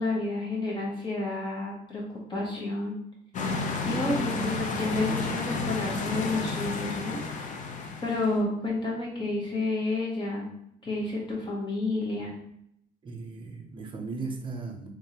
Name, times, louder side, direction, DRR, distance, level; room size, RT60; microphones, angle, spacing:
voice 1, 0.0-2.0 2.3-3.0 3.9-7.2 8.0-10.5 10.8-12.3, left 2 dB, 30° left, -3 dB, 1.5 m, -30 dB
sound 1, 3.3-8.4, left 3 dB, 45° left, 0.6 m, -31 dB
voice 2, 13.0-14.9, right 4 dB, 30° right, 4 dB, 0.7 m, -37 dB
3.5 x 3.2 x 2.9 m, 0.72 s
cardioid pair, 110°, 17 cm